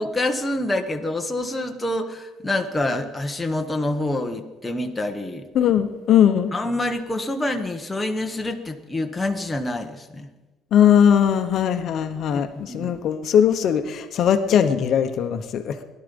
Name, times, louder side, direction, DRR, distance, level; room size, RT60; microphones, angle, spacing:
voice 1, 0.0-5.5 6.5-10.3 12.3-12.4 12.7-12.9, left 1 dB, 10° left, 4 dB, 1.0 m, -26 dB
voice 2, 5.5-6.5 10.7-15.8, left 9 dB, 50° left, 8 dB, 0.9 m, -19 dB
17.5 x 11.5 x 5.3 m, 1.2 s
cardioid pair, 155°, 0 cm